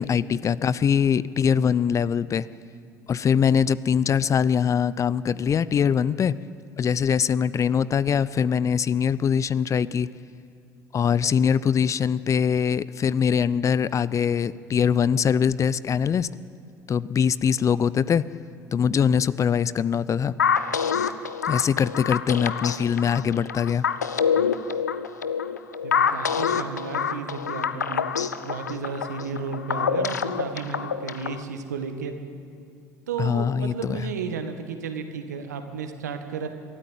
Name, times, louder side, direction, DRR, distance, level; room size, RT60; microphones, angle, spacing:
voice 1, 0.0-2.5 3.1-6.3 6.8-10.1 10.9-16.3 16.9-18.2 18.7-20.3 21.4-23.9 33.2-34.1, left 7 dB, 35° left, 19 dB, 0.6 m, -22 dB
sound 1, 20.4-31.4, left 7 dB, 90° left, 0.6 m, -26 dB
voice 2, 25.8-28.0 28.4-32.1 33.1-36.5, right 5 dB, 85° right, 7 dB, 1.7 m, -33 dB
22.5 x 13.0 x 9.0 m, 2.4 s
hypercardioid pair, 65°, 9 cm